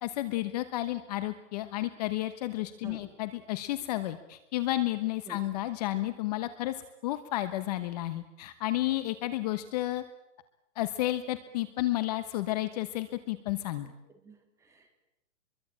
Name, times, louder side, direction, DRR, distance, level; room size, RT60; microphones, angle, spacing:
voice 1, 0.0-6.7 7.0-10.0 10.8-13.9, left 15 dB, 35° left, 12 dB, 1.2 m, -32 dB
voice 2, 14.2-14.9, right 4 dB, 10° right, 4 dB, 3.2 m, -50 dB
26.0 x 22.5 x 8.7 m, 0.88 s
hypercardioid pair, 170°, 36 cm